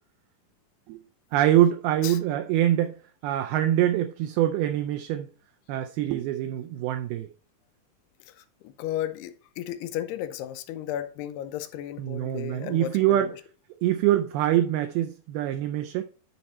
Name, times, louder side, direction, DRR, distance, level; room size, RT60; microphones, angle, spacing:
voice 1, 1.3-5.3 5.7-7.3 12.0-13.3 13.8-16.0, right 12 dB, 80° right, 2.3 m, -24 dB
voice 2, 8.6-13.3, left 11 dB, 90° left, 2.7 m, -34 dB
10.0 x 4.2 x 4.2 m
omnidirectional pair, 4.7 m